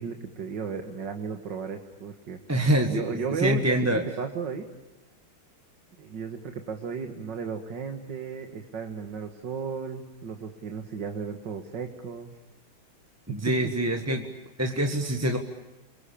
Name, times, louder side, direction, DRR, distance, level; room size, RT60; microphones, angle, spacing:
voice 1, 0.0-2.4 2.9-3.9 4.2-4.6 6.0-12.3 13.3-13.7, right 6 dB, 60° right, 5 dB, 2.3 m, -34 dB
voice 2, 2.5-3.0 3.4-4.0 13.3-14.3 14.6-15.4, right 1 dB, 10° right, 4 dB, 1.4 m, -25 dB
29.5 x 22.5 x 8.5 m, 1.1 s
omnidirectional pair, 2.3 m